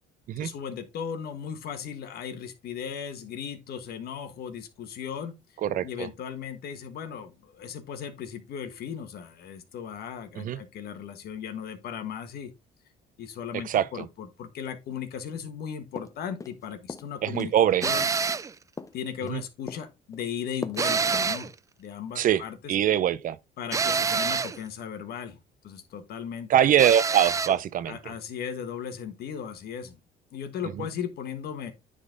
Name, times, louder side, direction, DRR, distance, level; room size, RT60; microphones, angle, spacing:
voice 1, 0.4-5.4 5.8-12.5 13.2-17.5 17.8-18.1 18.9-21.5 21.8-22.8 23.6-25.4 25.6-26.5 27.9-30.0 30.3-31.7, left 8 dB, 65° left, 1.5 m, -37 dB
voice 2, 5.6-6.1 10.4-10.6 13.6-14.0 17.2-17.9 19.3-19.4 22.2-22.4 22.7-23.4 26.5-28.0, right 10 dB, 55° right, 0.6 m, -23 dB
sound 1, 16.0-16.6 16.9-17.5 17.8-19.4 19.7-20.3 20.6-20.9 21.1-21.3, left 4 dB, 20° left, 0.6 m, -40 dB
sound 2, 17.8-18.5 20.8-21.5 23.7-24.6 26.8-27.6, right 5 dB, 20° right, 0.3 m, -26 dB
9.9 x 3.9 x 3.9 m
cardioid pair, 110°, 17 cm